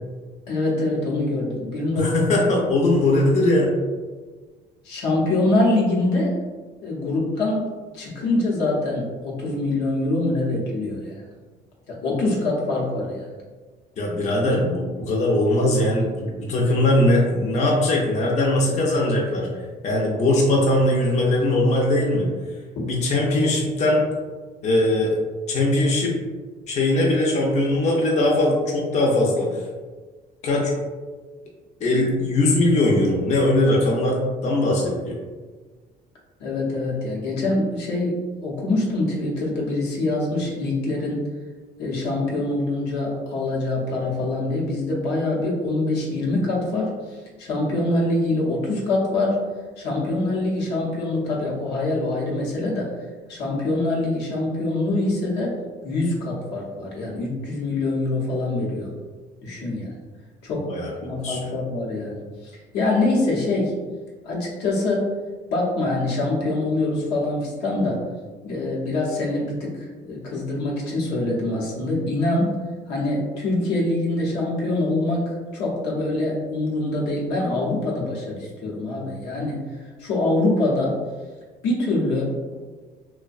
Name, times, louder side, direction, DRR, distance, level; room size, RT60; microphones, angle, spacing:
voice 1, 0.5-2.3 2.8-2.9 4.8-6.4 6.8-7.7 7.9-11.1 11.9-13.3 22.8-22.9 36.4-41.3 41.8-49.4 49.8-52.9 53.3-55.6 55.8-58.9 59.4-60.0 60.4-60.7 61.0-63.7 64.2-65.1 65.5-68.0 68.4-72.6 72.9-79.6 80.0-80.9 81.6-82.5, left 2 dB, 85° left, -4 dB, 0.7 m, -24 dB
voice 2, 2.0-3.7 14.0-19.5 19.8-22.3 22.9-24.0 24.6-25.2 25.5-26.1 26.7-29.6 30.4-30.7 31.8-35.2 60.5-61.5, left 1 dB, 45° left, -3 dB, 0.5 m, -20 dB
2.5 x 2.1 x 2.4 m, 1.4 s
cardioid pair, 110°, 17 cm